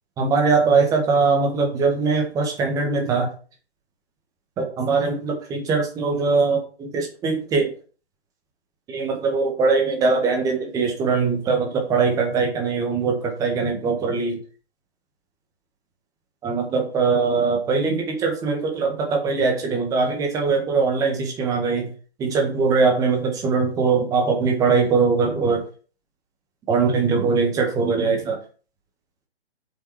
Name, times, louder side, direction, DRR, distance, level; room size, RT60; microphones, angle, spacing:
voice 1, 0.2-3.3 4.8-7.7 8.9-14.4 16.4-21.9 22.2-25.6 26.7-28.3, right 4 dB, 10° right, 2 dB, 1.6 m, -21 dB
7.8 x 7.2 x 4.9 m, 0.39 s
figure-of-eight pair, 135°, 33 cm